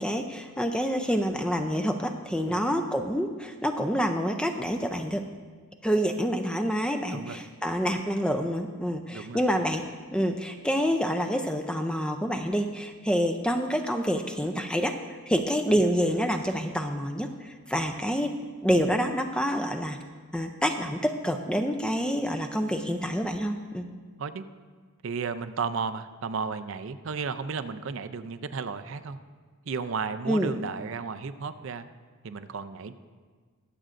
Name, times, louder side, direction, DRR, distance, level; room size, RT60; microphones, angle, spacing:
voice 1, 0.0-5.2 5.8-9.8 10.1-14.9 15.3-20.0 20.3-23.9 30.3-30.5, equal, 5° left, 6 dB, 0.4 m, -27 dB
voice 2, 25.0-29.2 29.7-31.9 32.2-32.9, right 5 dB, 60° right, 10 dB, 0.4 m, -33 dB
22.5 x 7.6 x 2.5 m, 1.5 s
head